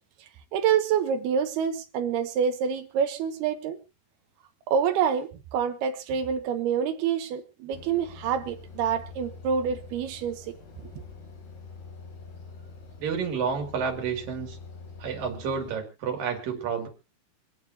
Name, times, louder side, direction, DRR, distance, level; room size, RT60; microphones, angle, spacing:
voice 1, 0.5-3.8 4.7-10.4, right 7 dB, 75° right, 2.9 m, -27 dB
sound 1, 7.7-15.7, left 4 dB, 65° left, 4.8 m, -45 dB
voice 2, 13.0-14.6 15.0-16.9, right 6 dB, 55° right, 3.9 m, -30 dB
26.5 x 9.0 x 2.8 m
omnidirectional pair, 4.9 m